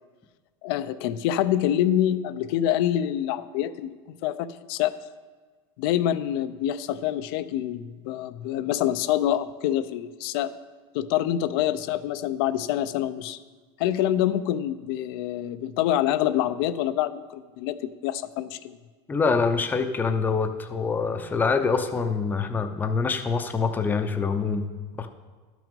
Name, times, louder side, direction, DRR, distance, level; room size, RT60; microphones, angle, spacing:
voice 1, 0.6-4.9 5.8-10.5 10.9-13.4 13.8-17.8 18.0-18.8, left 11 dB, 65° left, 13 dB, 0.6 m, -26 dB
voice 2, 19.1-24.6 25.0-25.1, left 4 dB, 15° left, 7 dB, 0.7 m, -25 dB
12.0 x 6.1 x 5.3 m, 1.4 s
supercardioid pair, 145°, 14 cm